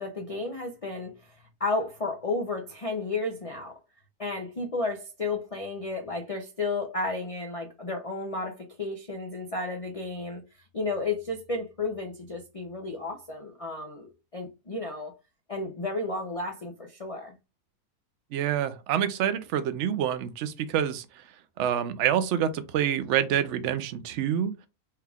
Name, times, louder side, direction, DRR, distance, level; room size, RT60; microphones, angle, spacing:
voice 1, 0.0-3.7 4.2-10.4 10.7-15.1 15.5-17.4, left 3 dB, 65° left, 0.3 m, -32 dB
voice 2, 18.3-21.0 21.6-24.5, right 9 dB, 65° right, 0.8 m, -27 dB
4.5 x 2.3 x 3.4 m
omnidirectional pair, 1.6 m